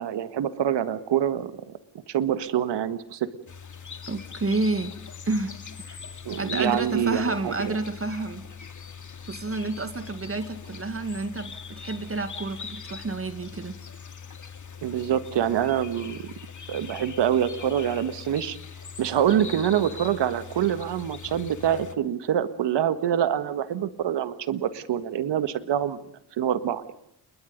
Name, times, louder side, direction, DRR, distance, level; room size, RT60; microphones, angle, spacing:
voice 1, 0.0-1.6 2.1-3.3 6.2-7.5 14.8-16.3 16.7-18.6 19.0-26.0 26.4-26.8, right 10 dB, 80° right, 12 dB, 1.7 m, -25 dB
sound 1, 3.5-22.0, left 6 dB, 45° left, 2.4 m, -41 dB
voice 2, 4.1-4.9 5.3-5.6 5.9-6.0 6.4-8.5 9.3-13.8, right 3 dB, 30° right, 9 dB, 2.1 m, -29 dB
28.5 x 21.5 x 5.3 m, 0.72 s
cardioid pair, 70°, 42 cm